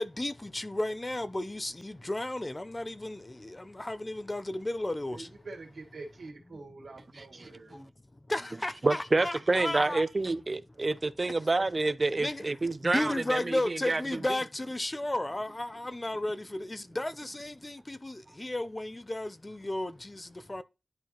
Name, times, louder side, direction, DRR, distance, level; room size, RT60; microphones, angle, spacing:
voice 1, 0.0-5.3 7.7-7.9 8.3-10.0 12.2-12.4 12.8-20.6, left 1 dB, 25° left, 0.6 m, -34 dB
voice 2, 5.1-7.8, right 3 dB, 80° right, 2.2 m, -45 dB
voice 3, 7.2-7.8 8.8-14.2, right 3 dB, 35° right, 0.5 m, -28 dB
10.5 x 4.7 x 2.9 m
wide cardioid pair, 90°, 0 cm